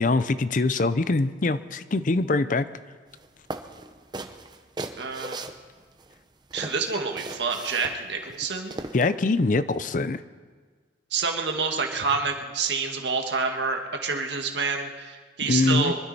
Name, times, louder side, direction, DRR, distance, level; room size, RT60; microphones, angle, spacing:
voice 1, 0.0-2.7 8.9-10.2 15.5-15.9, left 3 dB, 45° left, 14 dB, 0.5 m, -23 dB
sound 1, 3.1-3.3 3.5-6.1 6.5-9.1, right 2 dB, 25° right, 0.7 m, -38 dB
voice 2, 5.0-5.4 6.5-8.8 11.1-16.0, right 4 dB, 75° right, 3 dB, 1.7 m, -28 dB
24.5 x 12.5 x 4.2 m, 1.5 s
head